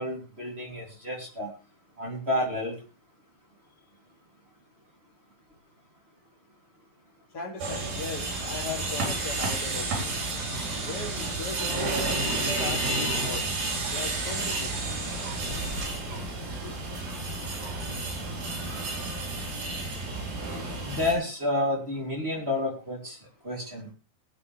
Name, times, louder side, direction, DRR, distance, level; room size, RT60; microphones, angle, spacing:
voice 1, 0.0-1.5 2.0-2.8 20.8-23.2 23.4-23.9, left 1 dB, 15° right, 0 dB, 2.8 m, -30 dB
voice 2, 7.3-10.2 10.8-14.9 16.6-16.7, left 4 dB, 25° left, 0 dB, 3.1 m, -39 dB
sound 1, 7.6-21.1, right 2 dB, 85° right, 6.1 m, -31 dB
Chirp tweet, 8.3-19.5, right 3 dB, 65° right, 5.4 m, -46 dB
21.0 x 8.7 x 3.4 m, 0.30 s
omnidirectional pair, 4.7 m